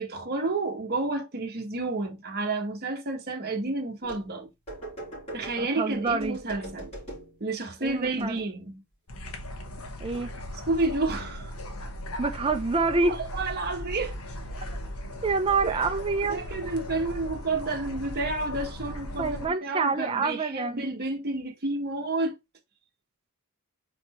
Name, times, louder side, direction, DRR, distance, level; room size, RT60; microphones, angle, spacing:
voice 1, 0.0-4.5 5.3-6.9 7.4-8.8 10.6-11.5 13.0-14.2 15.6-15.9 16.3-22.4, right 2 dB, 45° right, 1.0 m, -30 dB
sound 1, 4.0-4.3 4.7-7.4 7.8-8.6, right 1 dB, 30° left, 3.3 m, -42 dB
voice 2, 5.6-6.4 7.8-8.4 10.0-10.3 12.2-13.2 15.2-16.5 19.2-20.9, right 4 dB, 25° right, 0.4 m, -27 dB
sound 2, 9.1-19.5, left 1 dB, 90° left, 1.1 m, -38 dB
4.3 x 4.2 x 2.9 m
head